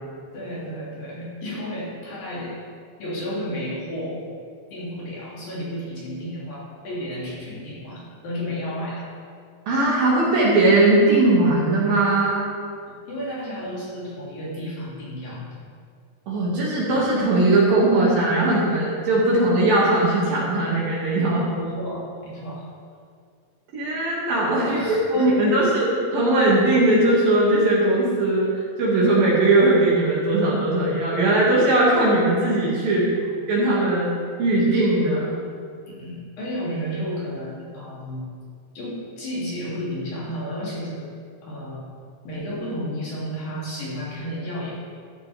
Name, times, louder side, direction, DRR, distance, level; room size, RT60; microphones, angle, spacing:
voice 1, 0.3-2.6 3.0-4.2 4.7-9.1 13.1-15.6 21.3-22.7 24.7-25.5 35.9-38.3 38.7-41.1 41.4-41.8 42.2-44.7, equal, 50° left, -7 dB, 4.3 m, -32 dB
voice 2, 9.7-12.5 16.3-21.4 23.7-28.5 28.8-33.1 33.5-34.1 34.4-35.3, right 2 dB, 55° right, -6 dB, 3.4 m, -19 dB
14.5 x 13.0 x 3.5 m, 2.2 s
omnidirectional pair, 5.5 m